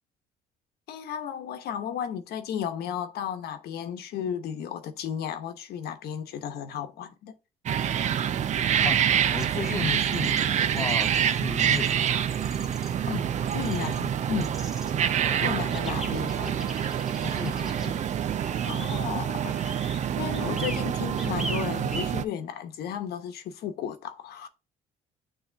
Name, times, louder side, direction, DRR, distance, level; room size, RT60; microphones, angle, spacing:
voice 1, 0.9-7.4 13.1-13.3 13.5-14.6 15.4-16.7 18.7-19.6 20.0-24.5, left 8 dB, 70° left, 1.1 m, -34 dB
sound 1, 7.7-22.2, right 9 dB, 45° right, 0.5 m, -27 dB
sound 2, 9.2-22.2, equal, ahead, 1.1 m, -43 dB
voice 2, 9.3-12.3 15.2-15.6 16.1-16.4 17.2-18.0 20.4-20.6, left 5 dB, 20° left, 0.4 m, -36 dB
8.9 x 3.1 x 3.4 m
cardioid pair, 110°, 17 cm